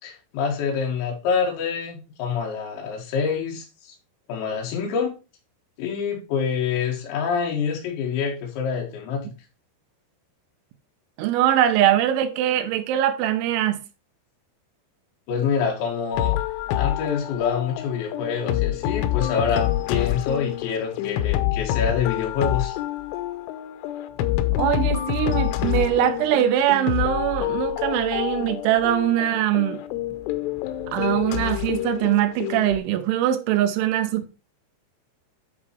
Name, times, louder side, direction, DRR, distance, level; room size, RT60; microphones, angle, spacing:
voice 1, 0.0-3.9 4.3-5.1 5.8-9.3 15.3-16.4 16.7-22.8, left 6 dB, 70° left, 4.1 m, -26 dB
voice 2, 11.2-13.8 24.6-29.8 30.9-34.2, right 12 dB, 80° right, 3.3 m, -22 dB
sound 1, 16.1-32.8, left 13 dB, 90° left, 3.2 m, -27 dB
11.0 x 4.0 x 4.5 m
omnidirectional pair, 5.6 m